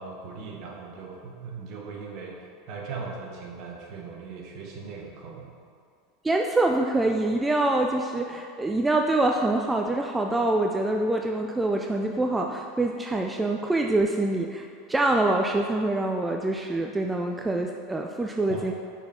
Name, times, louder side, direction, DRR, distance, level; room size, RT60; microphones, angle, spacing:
voice 1, 0.0-2.4 2.7-5.5 18.5-18.7, right 4 dB, 50° right, -1 dB, 1.2 m, -39 dB
voice 2, 6.2-18.7, right 2 dB, 10° right, 2 dB, 0.3 m, -25 dB
5.7 x 4.3 x 4.2 m, 2.2 s
hypercardioid pair, 85°, 0 cm